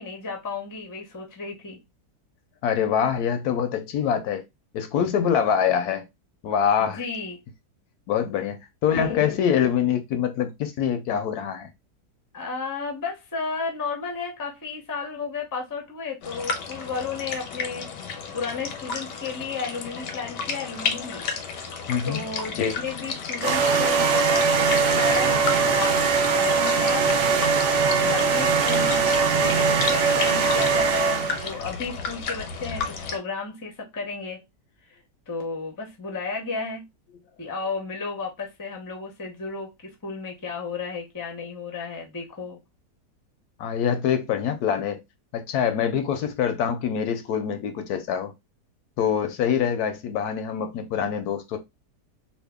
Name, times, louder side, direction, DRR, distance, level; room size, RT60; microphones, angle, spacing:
voice 1, 0.0-1.8 6.8-7.4 12.3-21.2 22.0-27.3 28.0-34.4 34.9-35.0 35.3-36.8 37.4-42.6, left 4 dB, 20° left, 0.5 m, -33 dB
voice 2, 2.6-4.4 4.7-6.1 6.4-7.0 8.1-11.7 21.9-22.2 22.5-22.8 43.6-45.0 45.3-48.3 49.0-51.6, left 8 dB, 70° left, 1.0 m, -24 dB
sound 1, 16.2-33.2, left 5 dB, 90° left, 1.3 m, -33 dB
sound 2, 23.4-31.5, right 5 dB, 80° right, 0.6 m, -21 dB
2.8 x 2.4 x 3.5 m
omnidirectional pair, 1.8 m